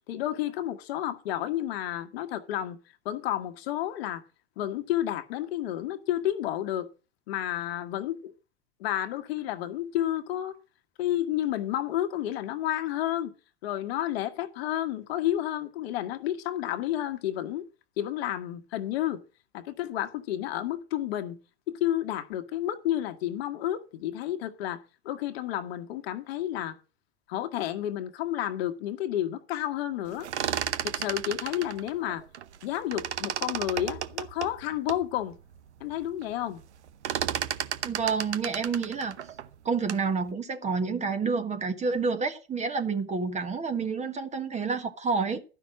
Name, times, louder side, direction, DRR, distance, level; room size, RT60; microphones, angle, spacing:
voice 1, 0.1-2.8 3.0-4.2 4.6-6.9 7.3-8.3 8.8-10.6 11.0-13.3 13.6-17.6 18.0-19.2 19.5-21.4 21.7-26.8 27.3-30.3 30.8-32.2 32.6-35.4 35.8-36.6, left 12 dB, 65° left, 1.4 m, -31 dB
sound 1, 30.1-32.6 32.9-35.0 35.6-35.7 35.9-36.3 36.6-40.1, right 10 dB, 85° right, 0.9 m, -33 dB
voice 2, 37.8-39.2 39.6-45.4, right 5 dB, 20° right, 1.4 m, -29 dB
12.0 x 5.7 x 7.5 m
hypercardioid pair, 105°, 34 cm